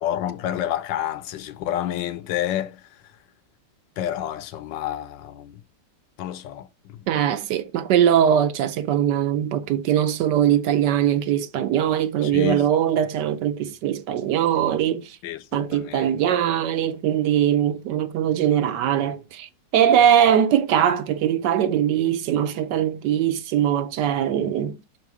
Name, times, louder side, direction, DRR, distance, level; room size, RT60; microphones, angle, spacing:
voice 1, 0.0-3.0 4.0-5.6 6.2-7.1 12.2-12.7 15.2-16.1, left 11 dB, 85° left, 1.3 m, -29 dB
voice 2, 7.1-15.2 15.5-24.8, right 10 dB, 75° right, 1.3 m, -21 dB
6.5 x 4.0 x 4.8 m
omnidirectional pair, 2.0 m